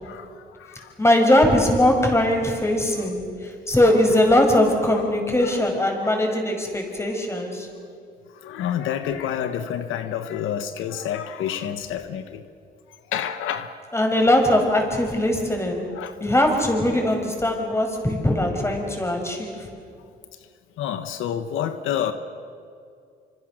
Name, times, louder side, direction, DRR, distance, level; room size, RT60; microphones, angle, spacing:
voice 1, 0.0-0.9 4.9-5.0 5.4-5.5 6.0-6.1 8.4-12.4 13.1-13.7 15.9-16.1 20.8-22.1, left 9 dB, 90° left, 9 dB, 1.3 m, -29 dB
voice 2, 1.0-7.7 13.9-15.9 16.2-19.7, left 1 dB, 15° left, 3 dB, 5.7 m, -20 dB
26.5 x 25.5 x 6.5 m, 2.3 s
cardioid pair, 90°, 20 cm